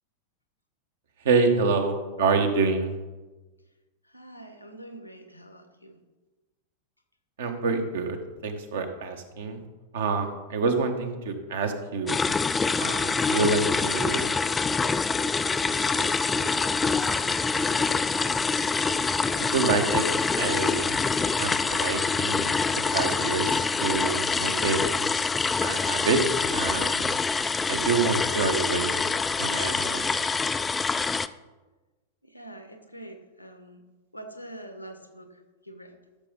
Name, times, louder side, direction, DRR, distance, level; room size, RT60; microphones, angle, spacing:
voice 1, 1.2-2.9 7.4-8.2 8.4-9.6 9.9-12.1 12.8-14.2 19.4-20.1 20.3-20.9 21.3-24.8 25.6-26.2 26.5-27.1 27.7-29.0 29.4-30.2, right 4 dB, 60° right, 6 dB, 1.3 m, -27 dB
voice 2, 4.0-6.0 15.8-17.9 32.2-33.8 34.1-35.9, right 1 dB, 90° left, 7 dB, 1.2 m, -45 dB
sound 1, 12.1-31.3, left 4 dB, 15° left, 0.3 m, -26 dB
sound 2, 15.1-18.5 18.8-18.9, right 1 dB, 10° right, 0.8 m, -42 dB
13.5 x 6.8 x 4.0 m, 1.2 s
figure-of-eight pair, 90°, 0 cm